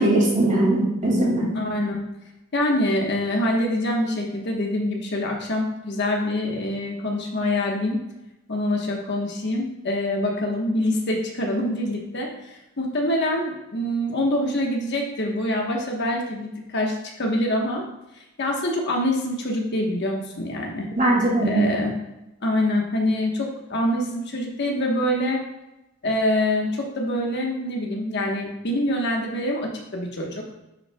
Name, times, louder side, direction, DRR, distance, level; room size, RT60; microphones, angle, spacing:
voice 1, 0.0-1.5 21.0-21.6, right 1 dB, 35° right, -3 dB, 2.3 m, -20 dB
voice 2, 1.5-2.0 2.5-8.0 8.5-17.8 18.4-20.9 21.4-22.0 22.4-25.4 26.0-30.4, left 1 dB, 55° left, 0 dB, 1.2 m, -25 dB
9.5 x 5.6 x 2.3 m, 0.93 s
head